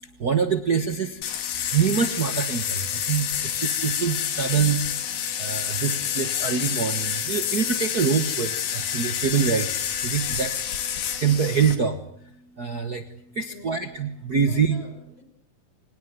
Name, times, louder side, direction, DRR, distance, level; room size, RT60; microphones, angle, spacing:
voice 1, 0.2-1.2 1.7-4.8 5.4-9.7 10.0-10.6 11.2-12.0 12.6-14.8, right 6 dB, 80° right, 9 dB, 0.8 m, -25 dB
sound 1, 1.2-11.8, left 9 dB, 90° left, 3.9 m, -28 dB
voice 2, 13.5-14.0 14.4-15.2, left 2 dB, 40° left, 7 dB, 6.1 m, -46 dB
25.0 x 20.0 x 9.3 m, 0.69 s
omnidirectional pair, 4.1 m